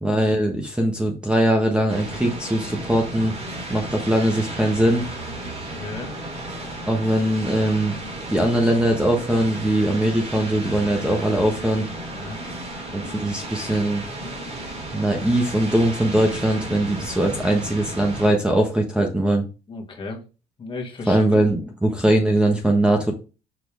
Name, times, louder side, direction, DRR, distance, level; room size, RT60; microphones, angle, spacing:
voice 1, 0.0-3.4 3.7-5.0 6.9-7.9 8.3-11.9 12.9-14.0 14.9-19.4 21.1-23.1, right 1 dB, 5° right, 2 dB, 1.2 m, -21 dB
sound 1, 1.9-18.3, right 1 dB, 40° right, 3.1 m, -34 dB
voice 2, 5.6-6.1 12.1-12.4 19.7-20.2 20.6-21.3 21.6-21.7, left 3 dB, 30° left, 1 dB, 1.9 m, -35 dB
6.7 x 4.3 x 3.5 m, 0.32 s
cardioid pair, 110°, 17 cm